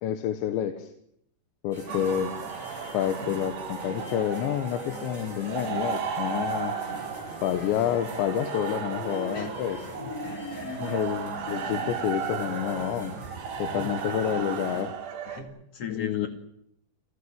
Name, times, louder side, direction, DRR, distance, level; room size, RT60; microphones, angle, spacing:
voice 1, 0.0-0.9 1.6-2.3 2.9-6.8 7.4-10.1 10.8-13.1 13.6-14.9 15.9-16.3, left 10 dB, 90° left, 8 dB, 3.5 m, -29 dB
sound 1, 1.7-14.8, equal, 15° right, 8.3 m, -41 dB
sound 2, 1.9-15.4, right 7 dB, 70° right, 4.7 m, -35 dB
voice 2, 10.0-11.0 13.7-13.9 15.3-16.3, left 6 dB, 40° left, 5 dB, 2.9 m, -40 dB
28.5 x 15.5 x 8.7 m, 0.75 s
omnidirectional pair, 5.0 m